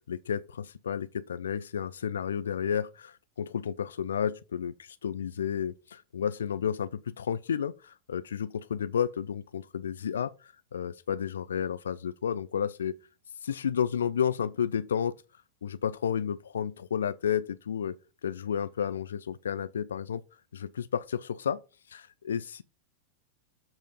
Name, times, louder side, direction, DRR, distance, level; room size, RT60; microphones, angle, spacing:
voice 1, 0.0-12.9 13.4-15.1 15.6-17.9 18.2-20.2 20.5-21.6 21.9-22.6, left 8 dB, 65° left, 0.4 m, -31 dB
7.6 x 4.5 x 5.3 m
figure-of-eight pair, 90°, 0 cm